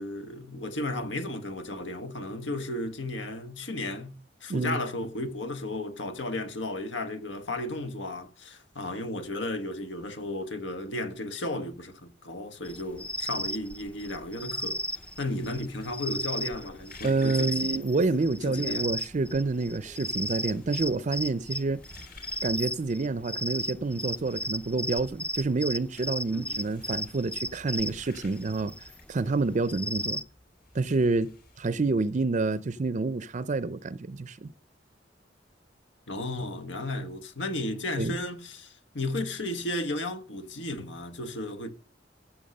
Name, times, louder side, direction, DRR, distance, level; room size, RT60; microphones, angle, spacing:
voice 1, 0.0-14.8 15.2-17.9 18.4-18.9 26.3-26.7 31.7-31.8 36.1-41.7, left 1 dB, 80° left, 1.5 m, -34 dB
sound 1, 12.6-30.2, equal, 5° left, 0.5 m, -35 dB
sound 2, 14.8-32.0, left 4 dB, 50° left, 3.7 m, -55 dB
voice 2, 17.0-21.8 22.4-30.2 30.7-34.5 38.0-38.2, right 3 dB, 40° right, 0.5 m, -28 dB
14.0 x 7.1 x 6.5 m
head